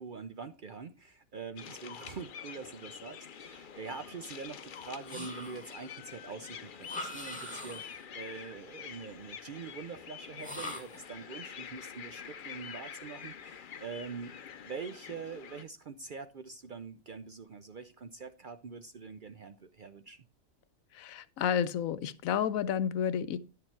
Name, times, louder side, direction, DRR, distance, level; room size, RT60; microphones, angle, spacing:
voice 1, 0.0-14.3 14.6-20.2, right 5 dB, 55° right, 0.5 m, -44 dB
sound 1, 1.6-15.6, left 7 dB, 50° left, 0.6 m, -47 dB
sound 2, 5.1-5.9 6.8-8.1 10.4-11.1, left 1 dB, 5° left, 1.8 m, -42 dB
voice 2, 20.9-23.4, left 8 dB, 85° left, 1.1 m, -31 dB
10.0 x 6.8 x 4.4 m
omnidirectional pair, 1.4 m